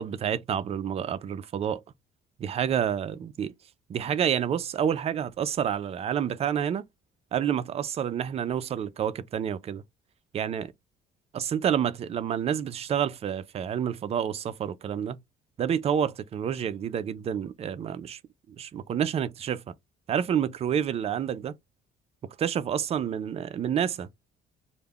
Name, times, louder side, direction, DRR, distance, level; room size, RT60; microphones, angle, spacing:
voice 1, 0.0-1.8 2.4-3.5 3.9-6.8 7.3-9.8 10.3-10.7 11.3-15.2 15.6-18.2 18.6-19.6 20.1-21.6 22.4-24.2, right 8 dB, 40° right, 0.4 m, -28 dB
2.3 x 2.1 x 3.5 m
cardioid pair, 110°, 17 cm